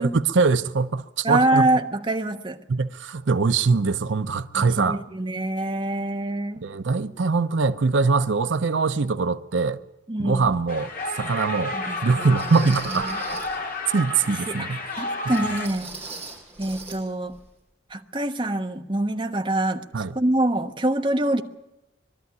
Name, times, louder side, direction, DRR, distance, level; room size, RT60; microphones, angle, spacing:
voice 1, 0.0-1.7 2.7-5.0 6.6-9.8 10.2-10.9 11.2-11.8 12.0-13.1 13.9-14.8 19.9-20.1, right 4 dB, 80° right, 0.7 m, -22 dB
voice 2, 1.2-2.6 4.6-6.7 10.1-10.5 11.7-13.2 14.3-15.9 16.6-17.3 17.9-21.4, right 1 dB, 25° right, 1.2 m, -25 dB
sound 1, 10.4-10.5 11.2-11.3 12.4-13.6 15.3-17.0 17.3-17.5 17.9-18.0, right 3 dB, 5° left, 6.5 m, -39 dB
sound 2, 10.7-15.7, left 2 dB, 50° left, 2.6 m, -31 dB
22.0 x 13.0 x 9.5 m
head